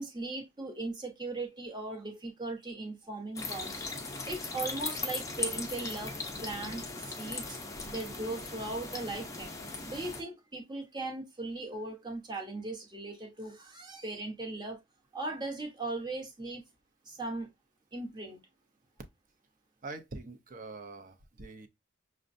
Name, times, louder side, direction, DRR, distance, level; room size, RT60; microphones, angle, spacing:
voice 1, 0.0-3.8 4.2-6.2 6.4-7.6 7.9-9.5 9.9-14.8 15.1-16.6 17.1-17.5 17.9-18.4, right 2 dB, 20° right, 1.0 m, -38 dB
sound 1, 3.4-10.2, left 3 dB, 15° left, 0.6 m, -38 dB
voice 2, 19.8-21.7, right 3 dB, 40° right, 0.6 m, -44 dB
6.2 x 2.2 x 2.5 m
head